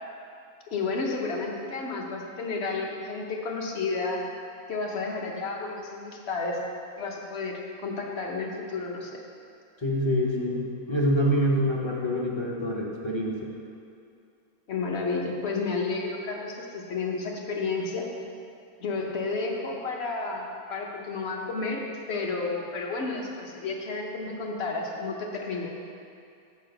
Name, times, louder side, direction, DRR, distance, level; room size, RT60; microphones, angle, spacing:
voice 1, 0.7-4.3 4.7-6.6 7.0-9.2 14.7-18.1 18.8-21.8 22.1-25.7, left 3 dB, 50° left, 0 dB, 1.1 m, -31 dB
voice 2, 9.8-13.5, equal, 25° left, -3 dB, 0.6 m, -26 dB
6.9 x 4.8 x 6.4 m, 2.5 s
omnidirectional pair, 1.5 m